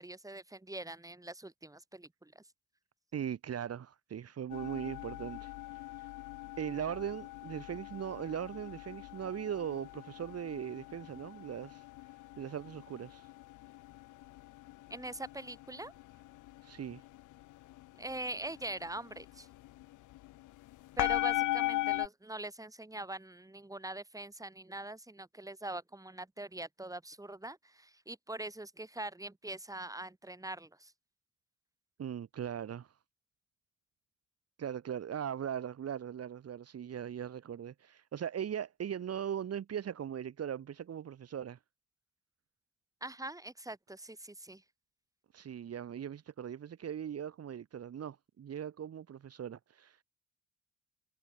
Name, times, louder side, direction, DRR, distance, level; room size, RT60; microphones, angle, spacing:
voice 1, 0.0-2.4 14.9-15.9 18.0-19.5 21.0-30.9 43.0-44.6, right 2 dB, 10° right, 6.5 m, -43 dB
voice 2, 3.1-5.5 6.0-6.1 6.6-11.8 12.4-13.3 16.6-17.0 32.0-32.9 34.6-41.6 45.3-50.0, right 9 dB, 55° right, 2.3 m, -39 dB
sound 1, 4.5-22.1, left 17 dB, 80° left, 0.8 m, -40 dB
cardioid pair, 90°, 30 cm